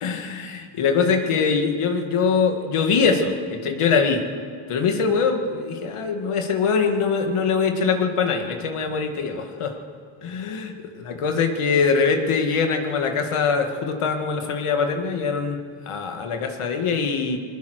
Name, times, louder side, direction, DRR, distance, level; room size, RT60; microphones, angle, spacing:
voice 1, 0.0-3.3 3.6-4.2 4.7-9.7 10.2-10.7 11.0-17.4, left 5 dB, 90° left, 5 dB, 2.0 m, -23 dB
21.5 x 20.0 x 6.5 m, 2.2 s
cardioid pair, 75°, 49 cm